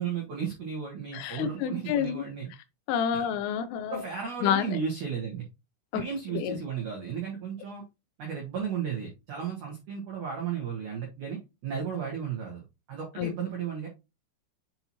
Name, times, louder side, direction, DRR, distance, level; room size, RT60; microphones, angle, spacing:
voice 1, 0.0-2.5 3.1-3.3 3.9-5.4 5.9-7.8 8.2-12.6 12.9-13.9, right 7 dB, 75° right, 1.8 m, -34 dB
voice 2, 1.1-2.2 2.9-4.0 4.4-4.6 5.9-6.0 6.4-6.5 13.2-13.3, left 9 dB, 85° left, 3.0 m, -28 dB
7.7 x 4.2 x 2.9 m
omnidirectional pair, 5.8 m